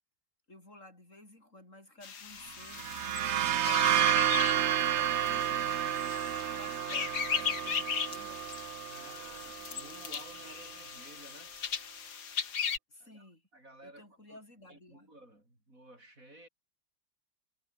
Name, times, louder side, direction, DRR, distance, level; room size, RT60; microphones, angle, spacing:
voice 1, 0.5-2.9 3.5-5.9 6.5-8.4 12.9-13.4 13.8-15.1, left 1 dB, 40° left, 7.4 m, -54 dB
sound 1, 2.0-12.8, left 7 dB, 65° left, 2.3 m, -38 dB
sound 2, 2.6-10.2, right 11 dB, 65° right, 0.6 m, -31 dB
voice 2, 8.9-11.5 13.0-14.4 14.7-16.5, right 1 dB, 45° right, 8.4 m, -54 dB
omnidirectional pair, 1.9 m